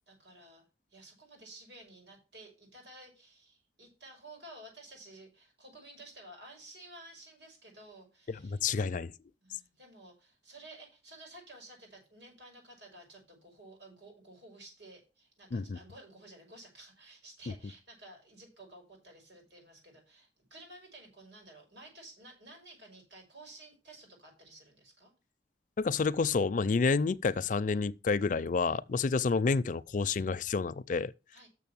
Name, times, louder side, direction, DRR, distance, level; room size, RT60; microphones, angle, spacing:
voice 1, 0.1-8.7 9.4-25.1 31.3-31.5, right 2 dB, 85° right, 5.7 m, -53 dB
voice 2, 8.3-9.1 15.5-15.8 25.8-31.1, left 4 dB, 45° left, 0.4 m, -29 dB
6.7 x 6.6 x 7.1 m
head